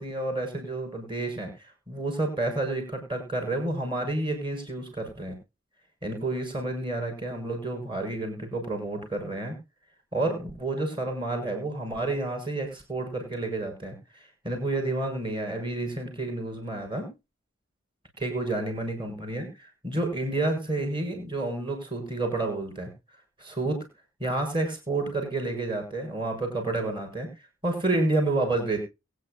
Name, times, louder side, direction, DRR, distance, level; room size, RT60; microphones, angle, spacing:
voice 1, 0.0-1.5 1.9-5.4 6.0-9.6 10.1-17.1 18.2-22.9 23.4-23.9 24.2-27.3 27.6-28.8, right 2 dB, 25° right, 4 dB, 5.8 m, -30 dB
22.5 x 9.5 x 2.3 m, 0.27 s
head